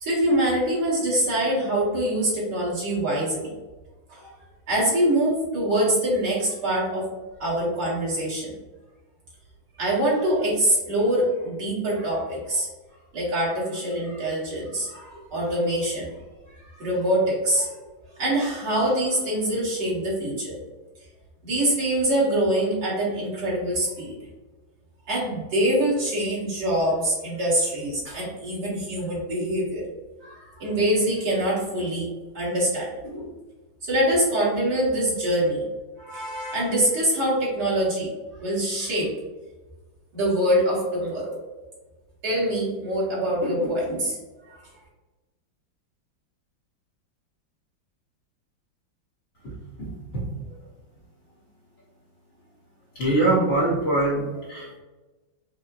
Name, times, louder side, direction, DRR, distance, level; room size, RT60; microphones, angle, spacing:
voice 1, 0.0-3.5 4.1-4.3 4.7-7.1 7.4-8.5 9.8-12.7 13.1-16.1 16.5-17.8 18.2-20.6 21.4-24.2 25.1-29.8 30.2-33.3 33.9-35.6 36.0-38.1 38.4-39.1 40.1-41.4 42.2-44.2, right 1 dB, 60° right, -7 dB, 1.9 m, -24 dB
voice 2, 52.9-54.8, right 2 dB, 50° left, -7 dB, 1.1 m, -23 dB
5.5 x 2.1 x 2.5 m, 1.2 s
omnidirectional pair, 2.2 m